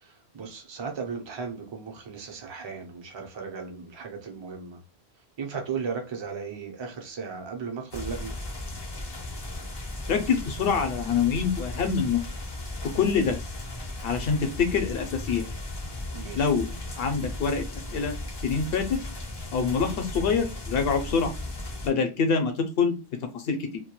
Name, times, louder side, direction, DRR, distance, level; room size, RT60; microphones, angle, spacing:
voice 1, 0.0-4.8 5.4-8.3 16.1-16.5, right 5 dB, 40° right, 0.4 m, -36 dB
sound 1, 7.9-21.9, left 2 dB, 35° left, 0.5 m, -36 dB
voice 2, 10.1-12.2 12.9-13.4 14.0-15.4 16.3-16.7 17.0-17.6 17.9-18.2 18.4-19.0 19.5-21.3 21.8-23.0 23.3-23.8, left 5 dB, 65° left, 0.8 m, -25 dB
2.2 x 2.2 x 2.8 m
omnidirectional pair, 1.1 m